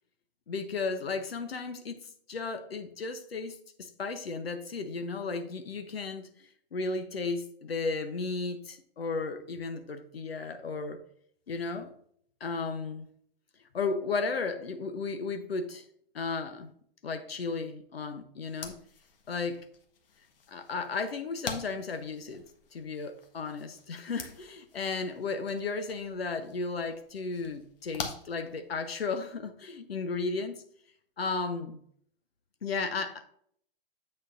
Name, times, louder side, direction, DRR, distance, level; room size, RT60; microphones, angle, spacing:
voice 1, 0.5-6.3 6.7-11.0 11.5-11.9 12.4-13.1 13.7-15.8 16.1-16.7 17.0-18.8 19.3-19.6 20.5-22.4 22.7-30.6 31.2-31.8 32.6-33.2, left 4 dB, 85° left, 8 dB, 0.9 m, -34 dB
sound 1, 18.4-29.1, left 5 dB, 70° left, 1.4 m, -46 dB
7.8 x 6.4 x 2.6 m, 0.63 s
hypercardioid pair, 120°, 29 cm